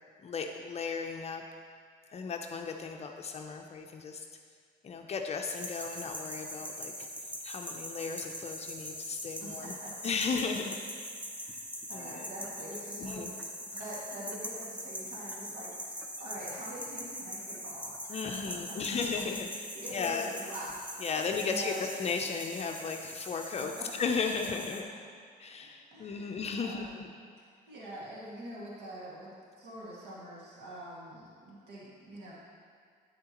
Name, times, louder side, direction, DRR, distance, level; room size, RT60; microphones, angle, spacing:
voice 1, 0.2-1.4 2.1-4.2 4.8-7.1 7.4-9.7 10.0-11.1 11.9-12.3 13.0-13.3 18.1-19.5 19.9-20.3 21.0-24.8 25.4-27.1, left 5 dB, 40° left, 3 dB, 0.6 m, -35 dB
sound 1, 5.5-24.8, equal, 10° right, 0.9 m, -42 dB
voice 2, 9.4-10.0 11.3-18.8 19.7-21.1 21.4-21.9 23.2-23.3 23.8-23.9 25.6-27.0 27.4-32.3, right 1 dB, 80° right, -7 dB, 2.1 m, -45 dB
9.4 x 8.4 x 3.0 m, 2.1 s
cardioid pair, 110°, 17 cm